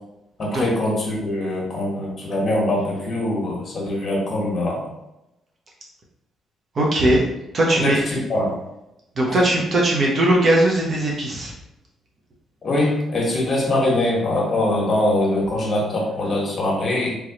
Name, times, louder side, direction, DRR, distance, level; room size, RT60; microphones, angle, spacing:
voice 1, 0.4-4.9 7.7-8.6 9.3-9.4 12.6-17.1, left 1 dB, 40° left, -2 dB, 1.4 m, -23 dB
voice 2, 6.7-7.2 7.5-8.0 9.2-11.5, right 1 dB, 45° right, -3 dB, 1.0 m, -19 dB
3.5 x 3.1 x 3.0 m, 0.90 s
cardioid pair, 90°, 0 cm